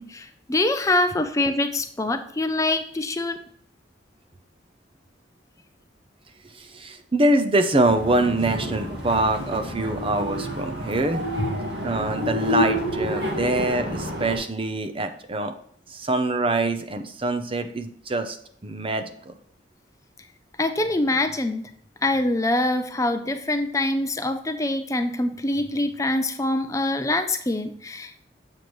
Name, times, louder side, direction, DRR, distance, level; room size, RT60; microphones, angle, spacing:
voice 1, 0.0-3.4 20.6-21.7 22.0-28.3, left 2 dB, 15° left, 7 dB, 0.5 m, -24 dB
voice 2, 6.5-11.2 11.8-15.5 15.9-18.4 18.6-19.3, right 2 dB, 30° right, 8 dB, 0.6 m, -24 dB
sound 1, 7.8-14.4, equal, 65° right, 1.8 m, -29 dB
7.6 x 6.9 x 3.1 m, 0.63 s
head